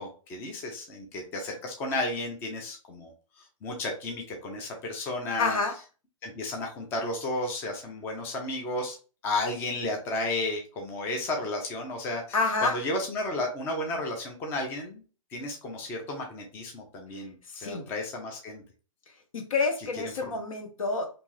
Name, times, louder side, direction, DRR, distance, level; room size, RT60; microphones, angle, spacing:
voice 1, 0.0-3.1 3.4-5.6 6.2-9.0 9.2-15.0 15.3-18.6 20.0-20.1, left 2 dB, 15° left, 2 dB, 0.4 m, -33 dB
voice 2, 5.4-5.7 12.3-12.8 17.6-17.9 19.3-21.1, left 3 dB, 75° left, 4 dB, 0.9 m, -28 dB
2.6 x 2.3 x 3.1 m, 0.35 s
hypercardioid pair, 150°, 17 cm